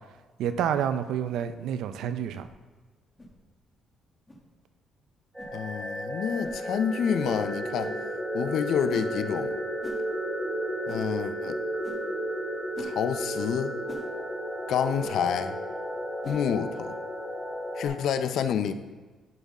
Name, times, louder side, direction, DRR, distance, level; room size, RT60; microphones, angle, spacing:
voice 1, 0.4-2.5, right 9 dB, 80° right, 11 dB, 0.4 m, -28 dB
sound 1, 1.2-1.4 2.3-2.5 3.2-3.4 4.3-4.4 5.4-5.6 6.4-6.6 7.8-8.0 8.9-9.1 9.8-10.0 10.9-11.1 11.8-12.0 12.7-13.0 13.9-14.1 15.0-15.2 16.2-16.4, equal, 15° left, 1.0 m, -43 dB
sound 2, 5.3-17.9, right 1 dB, 5° right, 2.0 m, -33 dB
voice 2, 5.5-7.9 8.3-9.6 10.9-11.6 12.8-13.7 14.7-15.6 16.3-17.0 17.8-18.7, left 8 dB, 70° left, 10 dB, 0.4 m, -28 dB
10.5 x 3.6 x 4.1 m, 1.3 s
cardioid pair, 135°, 0 cm